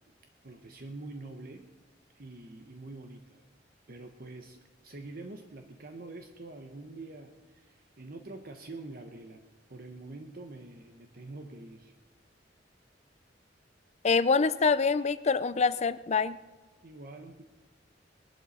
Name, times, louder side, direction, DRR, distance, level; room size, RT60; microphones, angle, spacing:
voice 1, 0.4-1.7 2.2-3.4 3.9-9.4 9.7-11.9 16.8-17.4, right 2 dB, 55° right, 5 dB, 1.0 m, -45 dB
voice 2, 14.0-16.4, left 5 dB, 40° left, 14 dB, 0.5 m, -25 dB
21.5 x 11.5 x 4.2 m, 1.2 s
head